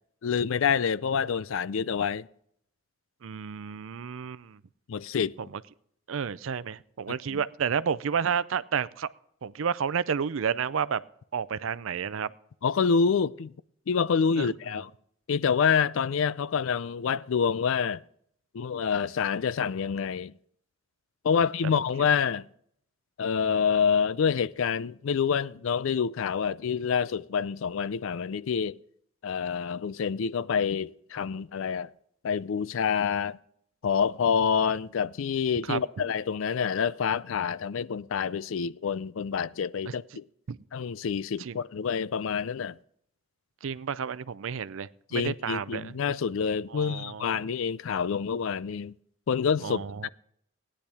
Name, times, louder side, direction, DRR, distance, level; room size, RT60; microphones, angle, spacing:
voice 1, 0.2-2.3 4.9-5.4 7.3-7.4 12.6-13.5 13.9-14.9 15.3-18.0 18.5-20.3 21.2-22.5 23.2-28.8 29.2-31.9 32.2-33.4 33.8-40.3 40.7-42.8 45.1-48.9 49.3-49.8, left 6 dB, 70° left, 0.4 m, -27 dB
voice 2, 3.2-4.6 5.4-5.6 6.1-9.1 9.4-11.0 11.3-12.3 14.4-14.5 21.4-21.5 35.7-35.8 39.9-40.0 40.5-40.6 41.4-41.6 43.6-46.0 46.7-47.5 49.6-50.1, right 7 dB, 75° right, 0.5 m, -31 dB
16.5 x 10.0 x 3.5 m
head